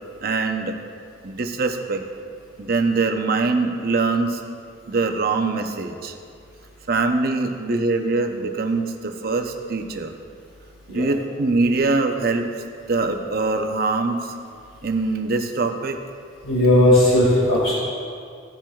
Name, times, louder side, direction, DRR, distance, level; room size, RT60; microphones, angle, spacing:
voice 1, 0.2-0.8 1.2-2.0 2.6-4.4 4.9-6.1 6.9-10.1 10.9-12.4 12.9-14.2 14.8-16.0, right 3 dB, 50° right, 5 dB, 0.7 m, -23 dB
voice 2, 16.4-17.7, left 1 dB, 90° left, -7 dB, 2.0 m, -16 dB
16.0 x 7.4 x 2.4 m, 2.3 s
head